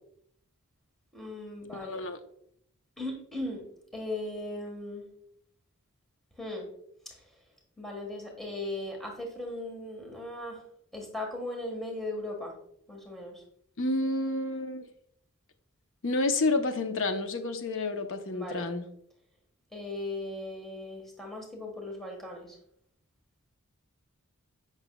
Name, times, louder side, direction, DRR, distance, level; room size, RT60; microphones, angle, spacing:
voice 1, 1.1-2.0 3.0-3.6 3.9-5.1 6.4-6.7 7.0-7.2 7.8-10.6 10.9-12.5 12.9-13.4 18.3-18.7 19.7-22.5, left 1 dB, ahead, 0 dB, 1.4 m, -38 dB
voice 2, 1.8-2.2 13.8-14.9 16.0-18.8, left 2 dB, 60° left, 7 dB, 0.8 m, -29 dB
7.8 x 5.9 x 2.2 m, 0.68 s
head